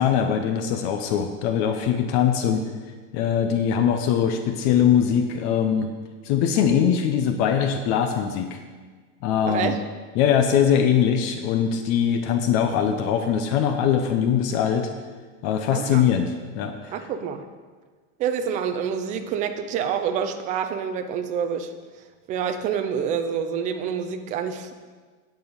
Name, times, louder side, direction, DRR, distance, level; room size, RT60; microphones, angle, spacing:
voice 1, 0.0-2.7 3.1-5.9 6.2-8.6 9.2-9.8 10.1-14.9 15.4-16.9, left 8 dB, 40° left, 7 dB, 0.7 m, -22 dB
voice 2, 9.5-9.8 15.7-16.0 16.9-17.4 18.2-21.7 22.3-24.7, right 7 dB, 20° right, 7 dB, 0.4 m, -27 dB
9.6 x 7.9 x 5.2 m, 1.4 s
supercardioid pair, 155°, 41 cm